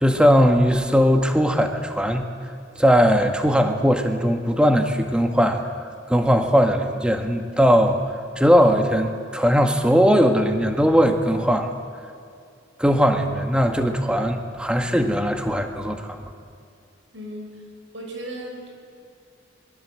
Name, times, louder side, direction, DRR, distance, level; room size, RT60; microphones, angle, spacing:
voice 1, 0.0-2.3 2.8-5.6 6.1-8.0 8.4-11.7 12.8-16.3, equal, 5° right, 5 dB, 1.7 m, -19 dB
voice 2, 17.1-17.6 17.9-18.7, right 1 dB, 80° right, 1 dB, 6.4 m, -35 dB
26.0 x 22.0 x 7.8 m, 2.4 s
head